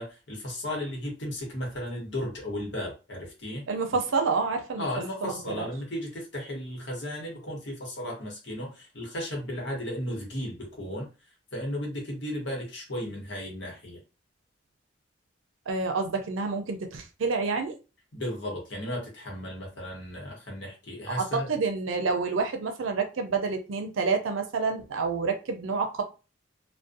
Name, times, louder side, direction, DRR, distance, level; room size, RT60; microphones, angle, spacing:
voice 1, 0.0-3.6 3.9-4.0 4.8-11.1 11.5-14.0 18.1-21.5, left 1 dB, 60° left, 0.9 m, -35 dB
voice 2, 3.7-4.9 5.2-5.7 15.7-17.7 21.1-26.0, right 4 dB, 85° right, 0.5 m, -28 dB
2.6 x 2.1 x 2.5 m
head